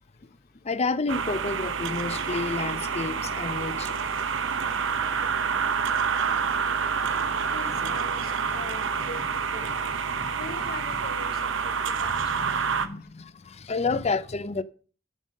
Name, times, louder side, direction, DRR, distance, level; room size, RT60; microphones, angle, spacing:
voice 1, 0.6-4.0 6.0-6.1 6.8-8.0 9.0-9.1 9.6-9.8 10.1-10.3 12.0-14.6, left 4 dB, 35° left, 0.6 m, -31 dB
sound 1, 1.1-12.9, right 6 dB, 75° right, 0.8 m, -28 dB
voice 2, 7.5-9.7 10.4-11.7 12.0-12.1, left 2 dB, 50° left, 1.0 m, -41 dB
9.3 x 5.6 x 6.3 m
head